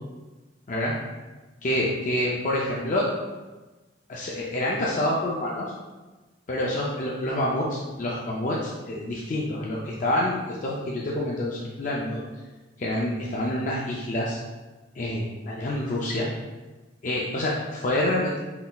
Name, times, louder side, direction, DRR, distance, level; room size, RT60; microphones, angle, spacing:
voice 1, 1.6-3.1 4.1-5.7 6.5-12.2 12.8-14.4 15.0-16.3 17.0-18.4, left 1 dB, 45° left, -4 dB, 0.4 m, -27 dB
4.1 x 3.9 x 2.3 m, 1.2 s
head